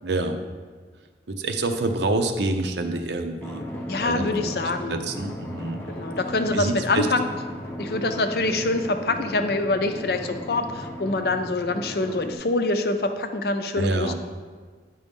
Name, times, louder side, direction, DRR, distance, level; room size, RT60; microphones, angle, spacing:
voice 1, 0.0-0.4 1.3-3.6 4.0-5.8 6.5-7.1 13.7-14.1, right 2 dB, 80° right, 6 dB, 0.7 m, -27 dB
Drum, 3.4-12.3, equal, 15° left, 0.8 m, -36 dB
voice 2, 3.9-5.0 5.9-7.3 7.7-14.1, left 2 dB, 60° left, 7 dB, 0.5 m, -25 dB
9.8 x 5.4 x 3.5 m, 1.5 s
head